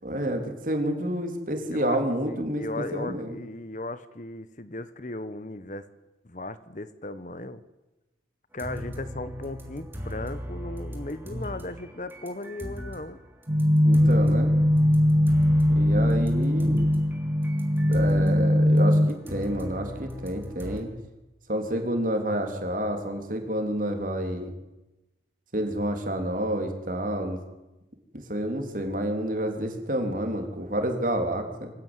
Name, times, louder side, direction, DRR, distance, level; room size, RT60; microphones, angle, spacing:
voice 1, 0.0-3.4 13.8-14.5 15.7-16.8 17.9-20.9 21.5-24.5 25.5-27.4 28.1-31.7, right 1 dB, 45° right, 4 dB, 3.6 m, -29 dB
voice 2, 1.6-2.0 2.3-5.9 6.2-7.6 8.5-13.2, left 2 dB, 40° left, 13 dB, 1.1 m, -37 dB
sound 1, 8.6-13.1 13.4-18.4 18.8-20.8, equal, 10° right, 3.1 m, -38 dB
sound 2, 13.5-19.1, equal, 30° right, 1.4 m, -20 dB
24.0 x 16.0 x 9.2 m, 1.0 s
head